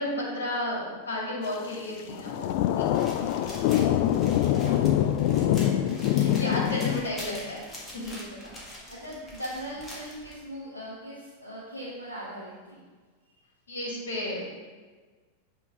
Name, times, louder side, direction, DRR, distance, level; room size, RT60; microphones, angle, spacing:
voice 1, 0.0-2.9 5.3-5.5 6.1-7.6 7.9-8.1 13.7-14.5, left 1 dB, 70° left, -4 dB, 2.3 m, -33 dB
sound 1, 2.1-7.0, left 11 dB, 45° left, 0.3 m, -24 dB
voice 2, 2.5-4.2 4.6-5.2 6.1-7.2 8.1-12.8, equal, 85° left, -8 dB, 1.2 m, -42 dB
sound 2, 2.9-10.4, left 1 dB, 15° left, 1.8 m, -44 dB
8.3 x 3.8 x 4.7 m, 1.4 s
figure-of-eight pair, 90°, 0 cm